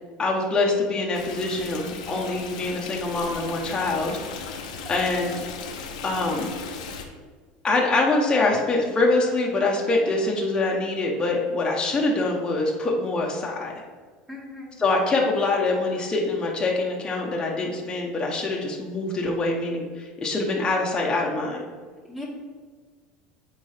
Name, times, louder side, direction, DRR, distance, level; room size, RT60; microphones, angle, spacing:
voice 1, 0.2-4.6 4.9-5.3 6.0-6.5 7.6-13.7 14.8-21.6, left 2 dB, 20° left, -2 dB, 1.1 m, -24 dB
Stream, 1.1-7.0, left 5 dB, 90° left, 0.8 m, -37 dB
voice 2, 14.3-14.8 22.1-22.2, left 2 dB, 5° right, -3 dB, 2.1 m, -38 dB
8.2 x 4.6 x 3.5 m, 1.5 s
supercardioid pair, 105°, 4 cm